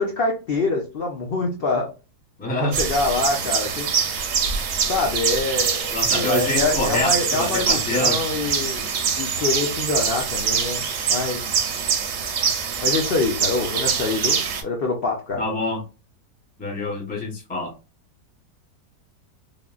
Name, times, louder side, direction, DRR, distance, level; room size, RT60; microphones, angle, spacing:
voice 1, 0.0-1.9 2.6-3.9 4.9-11.6 12.8-15.4, left 3 dB, 75° left, 0.5 m, -25 dB
voice 2, 2.4-2.8 5.9-8.2 15.4-15.8 16.6-17.7, left 1 dB, 10° left, 0.4 m, -26 dB
sound 1, 2.7-14.6, right 6 dB, 65° right, 0.8 m, -24 dB
3.5 x 2.1 x 2.3 m
omnidirectional pair, 1.8 m